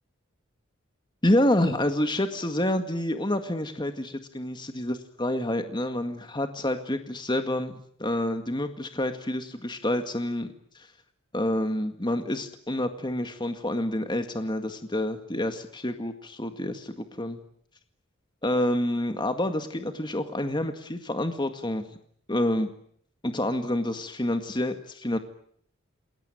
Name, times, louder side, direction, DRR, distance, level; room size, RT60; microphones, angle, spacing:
voice 1, 1.2-10.9 11.3-17.4 18.4-21.9 22.3-22.7 23.2-25.2, left 1 dB, 20° left, 7 dB, 1.9 m, -28 dB
28.5 x 21.0 x 9.2 m, 0.66 s
head